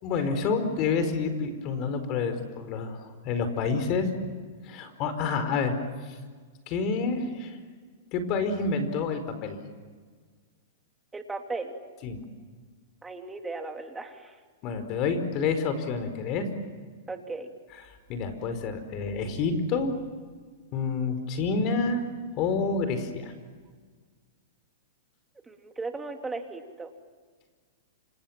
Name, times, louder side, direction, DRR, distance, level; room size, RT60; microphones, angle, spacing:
voice 1, 0.0-4.1 4.6-5.8 6.7-7.6 8.1-9.6 12.0-12.2 14.6-16.5 18.1-19.9 20.7-22.0 22.4-23.3, left 4 dB, 40° left, 9 dB, 4.9 m, -28 dB
voice 2, 11.1-11.7 13.0-14.4 17.1-17.5 25.5-26.9, right 3 dB, 10° right, 4 dB, 3.0 m, -36 dB
29.0 x 27.5 x 7.5 m, 1.5 s
hypercardioid pair, 130°, 0 cm